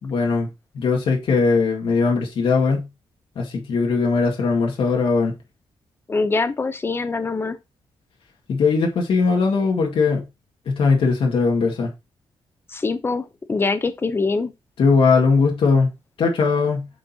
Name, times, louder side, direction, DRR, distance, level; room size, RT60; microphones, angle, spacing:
voice 1, 0.0-2.9 3.4-5.4 8.5-10.2 10.7-11.9 14.8-15.9 16.2-16.9, left 4 dB, 65° left, 1.9 m, -19 dB
voice 2, 6.1-7.6 12.7-14.5, left 3 dB, 25° left, 0.8 m, -23 dB
8.7 x 5.1 x 2.9 m
wide cardioid pair, 135°, 10 cm